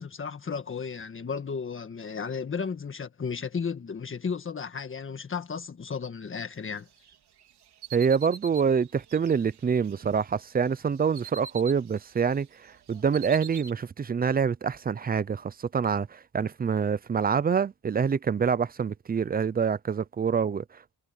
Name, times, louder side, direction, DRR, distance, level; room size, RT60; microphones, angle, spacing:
voice 1, 0.0-6.9, left 6 dB, 30° left, 1.6 m, -34 dB
sound 1, 7.0-10.2 10.6-12.4 12.7-13.7, right 7 dB, 90° right, 3.9 m, -45 dB
voice 2, 7.9-21.0, right 6 dB, 25° right, 0.4 m, -26 dB
wide cardioid pair, 155°, 39 cm